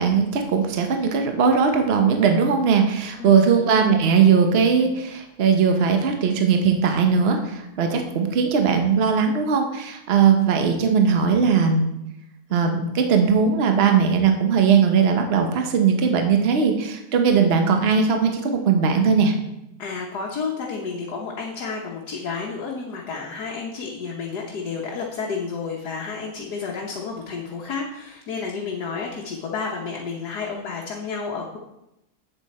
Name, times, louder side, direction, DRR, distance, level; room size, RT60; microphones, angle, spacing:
voice 1, 0.0-11.9 12.5-19.3, right 6 dB, 45° right, 5 dB, 1.1 m, -19 dB
voice 2, 3.2-3.5 19.8-31.6, left 5 dB, 75° left, -2 dB, 1.6 m, -31 dB
8.4 x 7.5 x 4.3 m, 0.87 s
omnidirectional pair, 1.7 m